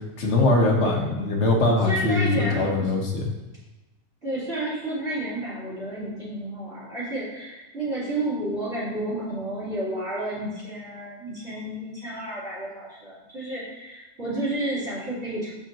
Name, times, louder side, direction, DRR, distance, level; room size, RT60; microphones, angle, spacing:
voice 1, 0.2-3.3, left 2 dB, 55° left, 0 dB, 1.5 m, -22 dB
voice 2, 0.8-1.3 1.8-2.9 4.2-15.5, right 1 dB, 50° right, -14 dB, 3.2 m, -31 dB
7.7 x 6.6 x 2.9 m, 1.1 s
omnidirectional pair, 1.5 m